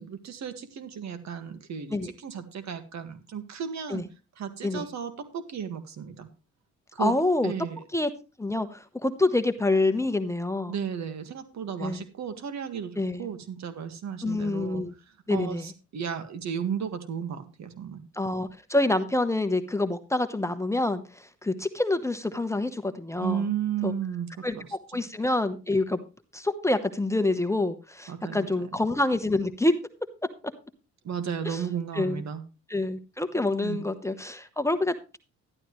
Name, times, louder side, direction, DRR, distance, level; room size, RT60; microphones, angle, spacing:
voice 1, 0.0-4.0 4.4-6.3 6.9-7.1 7.4-7.8 10.7-18.0 23.2-24.7 24.9-25.0 28.1-28.5 31.0-32.4 33.6-33.8, right 7 dB, 65° right, 9 dB, 1.8 m, -34 dB
voice 2, 7.0-7.5 7.9-8.1 8.4-10.7 11.8-12.0 13.0-13.3 14.2-14.9 15.3-15.7 18.1-23.4 23.8-23.9 24.4-26.0 26.3-29.7 31.4-31.6 31.9-32.2 32.7-35.2, left 2 dB, 10° left, 9 dB, 1.0 m, -27 dB
12.0 x 11.5 x 3.1 m, 0.31 s
cardioid pair, 90°, 30 cm